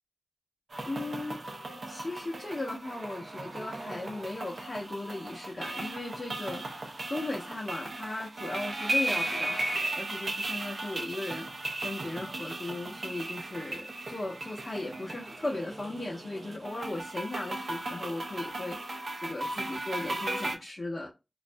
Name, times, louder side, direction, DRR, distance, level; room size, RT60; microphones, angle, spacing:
sound 1, 0.7-20.6, right 2 dB, 75° right, 0.6 m, -36 dB
voice 1, 0.8-1.5 1.9-21.1, left 2 dB, 45° left, 0.7 m, -37 dB
2.5 x 2.1 x 2.5 m
wide cardioid pair, 90°, 0 cm